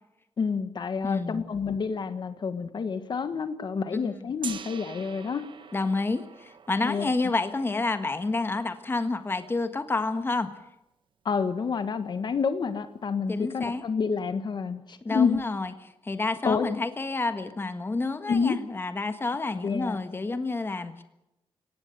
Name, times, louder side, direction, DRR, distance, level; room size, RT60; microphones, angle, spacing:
voice 1, 0.4-5.5 6.8-7.1 11.2-15.4 16.4-16.7 18.3-18.5 19.6-20.0, left 5 dB, 50° left, 10 dB, 1.6 m, -28 dB
voice 2, 1.0-1.4 3.9-4.2 5.7-10.5 13.3-13.8 15.0-15.7 16.0-21.0, left 3 dB, 25° left, 9 dB, 1.5 m, -29 dB
Gong, 4.4-10.3, right 7 dB, 60° right, 1.5 m, -46 dB
22.0 x 18.0 x 6.9 m, 0.87 s
wide cardioid pair, 120°, 9 cm